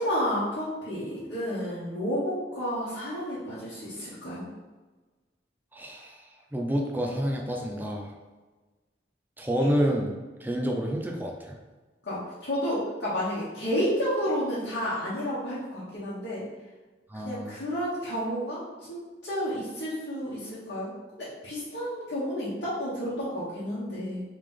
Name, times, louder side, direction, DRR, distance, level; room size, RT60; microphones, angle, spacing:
voice 1, 0.0-4.5 12.0-16.4 17.1-20.9 21.2-24.2, equal, 80° left, -11 dB, 1.1 m, -31 dB
voice 2, 5.7-6.2 6.5-8.1 9.4-10.2 10.4-11.6 17.1-17.5, equal, 10° right, 0 dB, 0.5 m, -28 dB
3.3 x 3.0 x 3.6 m, 1.3 s
head